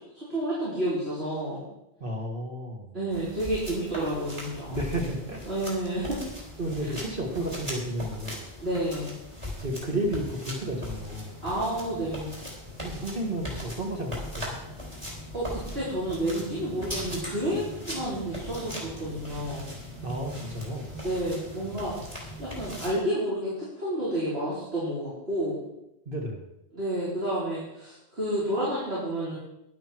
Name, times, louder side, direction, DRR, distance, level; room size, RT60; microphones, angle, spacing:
voice 1, 0.1-1.6 2.9-4.8 5.5-6.2 6.8-7.0 8.6-9.1 11.4-12.3 15.3-19.7 21.0-25.6 26.7-29.4, right 1 dB, 75° right, -10 dB, 4.9 m, -30 dB
voice 2, 2.0-3.0 4.7-5.4 6.6-8.6 9.6-11.4 12.8-14.6 20.0-21.0 26.1-26.5, right 1 dB, 55° right, 0 dB, 2.0 m, -32 dB
sound 1, 3.1-23.0, left 1 dB, 30° right, 3.8 m, -39 dB
12.0 x 11.5 x 4.5 m, 0.88 s
omnidirectional pair, 1.1 m